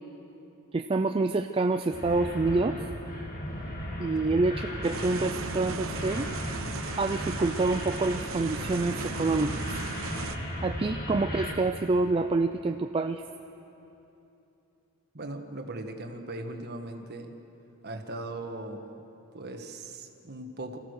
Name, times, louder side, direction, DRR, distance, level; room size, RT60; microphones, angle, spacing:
voice 1, 0.7-2.8 4.0-6.3 7.0-9.7 10.6-13.2, right 3 dB, 25° right, 6 dB, 0.4 m, -27 dB
sound 1, 1.9-11.5, left 1 dB, 40° left, 2.2 m, -36 dB
sound 2, 4.8-10.4, right 4 dB, 65° right, 1.0 m, -37 dB
voice 2, 15.1-17.4 17.8-18.8 19.3-20.8, right 2 dB, 45° right, 5 dB, 1.5 m, -39 dB
27.0 x 14.5 x 6.5 m, 3.0 s
head